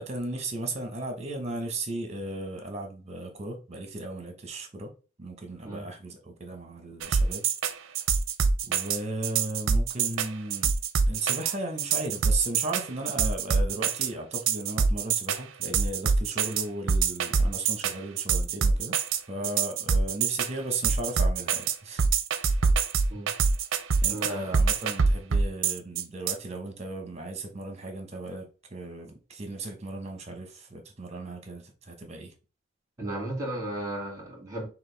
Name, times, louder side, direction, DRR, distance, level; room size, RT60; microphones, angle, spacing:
voice 1, 0.0-4.9 5.2-7.4 7.9-8.0 8.7-10.7 11.1-19.0 19.3-22.0 24.0-32.3, right 2 dB, 30° right, 1.0 m, -36 dB
sound 1, 7.0-26.3, right 5 dB, 65° right, 0.5 m, -25 dB
voice 2, 24.1-24.6 33.0-34.7, right 1 dB, 15° right, 1.9 m, -34 dB
5.9 x 2.5 x 3.3 m
head